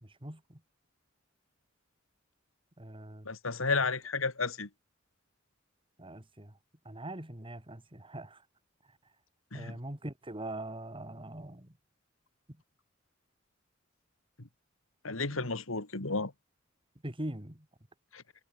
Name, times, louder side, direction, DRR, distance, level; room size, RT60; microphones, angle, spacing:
voice 1, 0.0-0.6 2.8-3.3 3.7-3.8 6.0-6.5 6.8-8.4 9.5-11.7 15.3-15.5 17.0-17.7, right 1 dB, 25° right, 2.7 m, -42 dB
voice 2, 3.2-4.7 9.5-9.8 15.0-16.3 18.1-18.2, left 4 dB, 85° left, 2.5 m, -32 dB
head